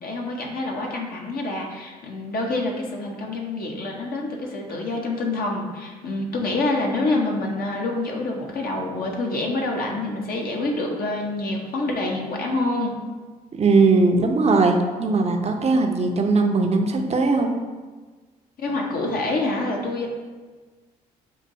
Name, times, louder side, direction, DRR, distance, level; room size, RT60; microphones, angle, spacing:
voice 1, 0.0-12.9 18.6-20.1, left 2 dB, 50° left, 0 dB, 0.8 m, -27 dB
voice 2, 13.5-17.5, right 3 dB, 35° right, 3 dB, 0.6 m, -19 dB
5.6 x 2.6 x 2.6 m, 1.4 s
hypercardioid pair, 55°, 20 cm